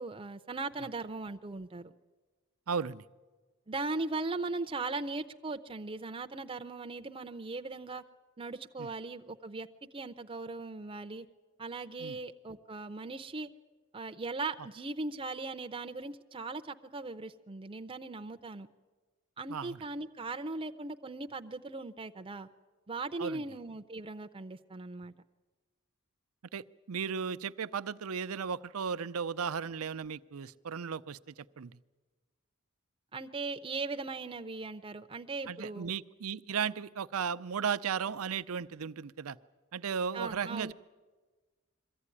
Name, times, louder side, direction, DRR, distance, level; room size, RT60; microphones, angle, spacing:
voice 1, 0.0-1.9 3.7-8.0 8.4-9.7 9.9-11.3 11.6-13.5 13.9-18.7 19.4-22.5 22.9-25.1 33.1-35.9 40.1-40.7, right 3 dB, 25° right, 7 dB, 0.6 m, -39 dB
voice 2, 2.7-3.0 8.8-8.9 12.0-12.2 19.5-19.8 23.2-23.4 26.5-31.7 35.5-39.4 39.7-40.7, right 6 dB, 85° right, 14 dB, 0.6 m, -35 dB
22.5 x 15.0 x 9.8 m, 1.3 s
head